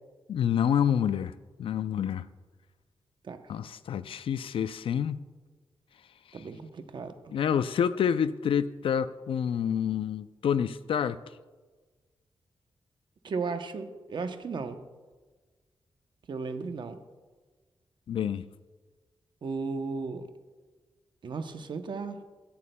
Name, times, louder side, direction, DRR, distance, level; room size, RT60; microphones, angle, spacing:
voice 1, 0.3-1.3 1.6-2.3 3.5-5.2 7.3-11.2 18.1-18.4, left 8 dB, 75° left, 0.4 m, -28 dB
voice 2, 6.3-7.3 13.2-14.8 16.3-17.0 19.4-20.3 21.2-22.2, right 4 dB, 55° right, 0.8 m, -35 dB
15.5 x 11.0 x 2.2 m
wide cardioid pair, 100°, 9 cm